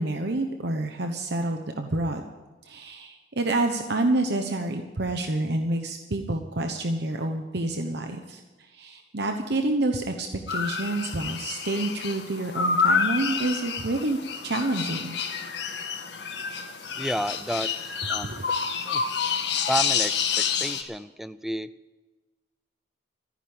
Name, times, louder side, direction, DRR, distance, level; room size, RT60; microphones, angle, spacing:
voice 1, 0.0-2.2 2.6-14.2 14.4-15.1 18.2-18.4, right 2 dB, 65° right, 5 dB, 1.1 m, -28 dB
sound 1, 10.5-20.8, left 6 dB, 65° left, 1.7 m, -28 dB
voice 2, 17.0-17.7 18.1-18.3 18.8-19.0 19.7-21.7, right 1 dB, ahead, 14 dB, 0.4 m, -31 dB
14.0 x 10.5 x 8.9 m, 1.3 s
head